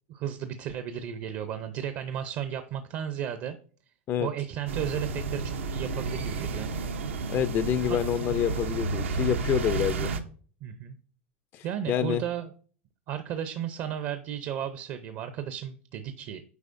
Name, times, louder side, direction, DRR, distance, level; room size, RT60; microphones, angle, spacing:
voice 1, 0.1-3.6 4.2-6.7 7.9-8.0 10.6-11.0 11.6-12.5 13.1-16.4, right 9 dB, 50° right, 10 dB, 0.6 m, -34 dB
sound 1, 4.7-10.2, right 4 dB, 90° right, 0.8 m, -31 dB
voice 2, 7.3-10.1 11.5-12.2, left 10 dB, 35° left, 12 dB, 0.4 m, -27 dB
8.1 x 4.8 x 2.6 m, 0.43 s
hypercardioid pair, 110°, 7 cm